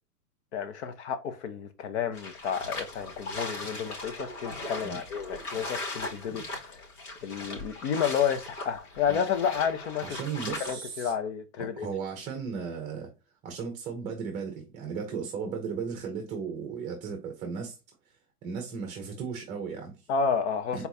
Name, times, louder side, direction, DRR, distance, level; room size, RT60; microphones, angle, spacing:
voice 1, 0.5-6.8 7.2-10.2 10.6-11.9 20.1-20.9, left 7 dB, 45° left, 1.0 m, -31 dB
sound 1, 2.1-10.7, left 2 dB, 75° left, 2.9 m, -39 dB
voice 2, 10.0-11.1 11.6-13.1 13.4-17.7 18.4-19.9 20.7-20.9, right 6 dB, 15° right, 0.8 m, -35 dB
4.4 x 4.1 x 2.7 m
hypercardioid pair, 145°, 45 cm